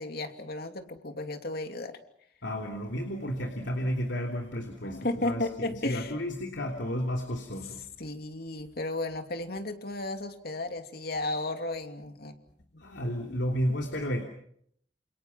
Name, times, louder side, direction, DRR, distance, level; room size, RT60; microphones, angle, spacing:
voice 1, 0.0-2.0 4.8-6.1 8.0-12.3, left 2 dB, 60° left, 6 dB, 2.8 m, -34 dB
voice 2, 2.4-7.9 12.8-14.2, equal, 75° left, 2 dB, 3.2 m, -32 dB
29.0 x 28.5 x 5.9 m, 0.71 s
head